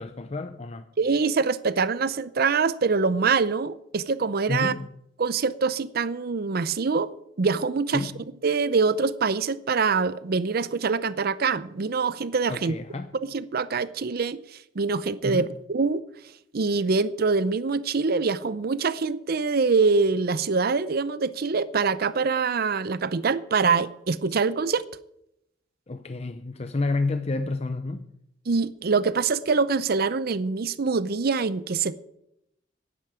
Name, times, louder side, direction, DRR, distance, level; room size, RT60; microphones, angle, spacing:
voice 1, 0.0-0.9 4.5-4.9 7.9-8.2 12.5-13.2 15.2-15.5 25.9-28.1, left 3 dB, 35° left, 0.6 m, -30 dB
voice 2, 1.0-4.7 5.2-7.1 7.4-8.1 8.4-12.7 13.2-14.4 14.8-16.0 16.5-24.8 28.5-32.0, right 4 dB, 55° right, 0.6 m, -24 dB
10.5 x 9.7 x 8.8 m
head